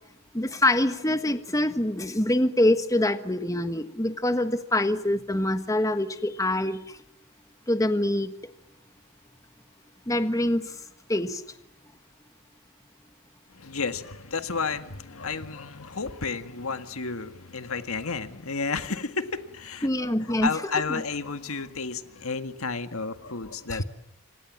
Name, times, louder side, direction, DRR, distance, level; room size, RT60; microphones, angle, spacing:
voice 1, 0.3-7.0 7.7-8.3 10.1-10.8 11.1-11.4 19.8-20.5 23.7-23.8, left 1 dB, 15° left, 9 dB, 1.3 m, -25 dB
voice 2, 13.5-20.1 20.4-23.8, left 4 dB, 75° left, 9 dB, 1.7 m, -32 dB
28.5 x 25.5 x 7.5 m, 0.80 s
head